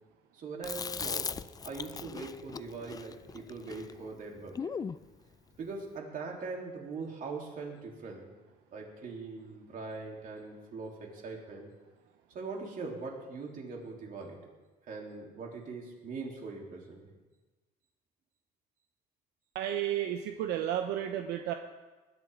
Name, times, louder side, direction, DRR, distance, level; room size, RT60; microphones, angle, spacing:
voice 1, 0.3-1.4 1.6-4.7 5.6-8.3 8.7-11.7 12.3-14.4 14.9-17.1, right 4 dB, 55° right, -1 dB, 3.4 m, -41 dB
Chewing mastication, 0.6-5.0, left 6 dB, 20° left, 0.4 m, -39 dB
voice 2, 19.5-21.5, right 11 dB, 90° right, 5 dB, 0.8 m, -32 dB
20.0 x 11.0 x 3.7 m, 1.2 s
cardioid pair, 110°, 17 cm